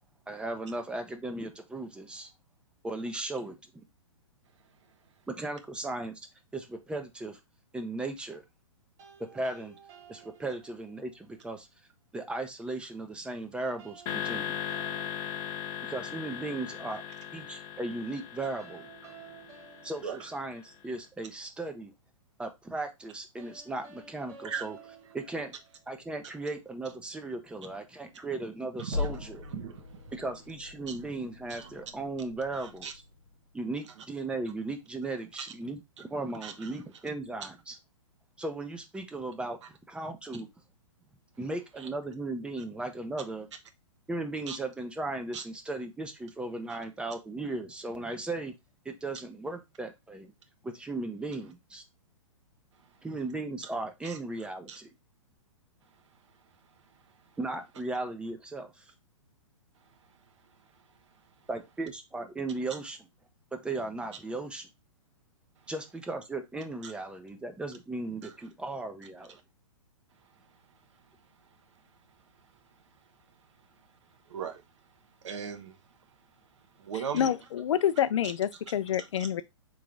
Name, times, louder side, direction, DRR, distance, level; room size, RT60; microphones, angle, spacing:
voice 1, 0.3-2.3 2.8-3.6 5.3-6.2 6.5-7.4 7.7-8.4 9.2-9.8 10.1-11.7 12.1-14.5 15.8-17.0 17.3-18.8 19.8-21.9 22.4-24.8 25.1-25.5 25.9-29.4 30.1-32.9 33.5-37.8 38.4-39.6 39.9-40.5 41.4-43.5 44.1-48.5 48.9-50.3 50.6-51.8 53.0-54.9 57.4-58.8 61.5-63.0 63.5-64.7 65.7-69.4, right 2 dB, 5° right, 0.4 m, -36 dB
sound 1, 9.0-11.1 13.8-16.2 18.6-21.1 23.4-26.2, right 7 dB, 35° right, 1.9 m, -53 dB
sound 2, 14.1-20.4, left 10 dB, 25° left, 0.7 m, -38 dB
voice 2, 28.8-29.1 29.5-29.8 31.5-31.7 32.5-32.9 36.4-36.5 44.5-44.6 45.3-45.4 54.0-54.2 54.7-54.8 66.8-66.9 74.3-74.6 75.2-75.8 76.8-77.3, right 7 dB, 60° right, 0.9 m, -37 dB
sound 3, 28.9-33.6, left 3 dB, 90° left, 1.0 m, -40 dB
voice 3, 76.9-79.4, left 9 dB, 60° left, 0.4 m, -28 dB
3.7 x 3.1 x 3.5 m
figure-of-eight pair, 120°, 17 cm